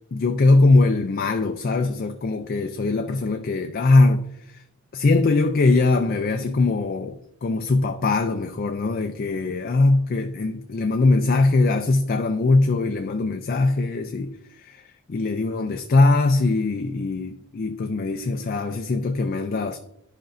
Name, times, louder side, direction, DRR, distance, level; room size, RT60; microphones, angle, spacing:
voice 1, 0.1-4.6 4.9-19.8, left 3 dB, 45° left, 0.4 m, -21 dB
11.5 x 5.2 x 2.5 m
head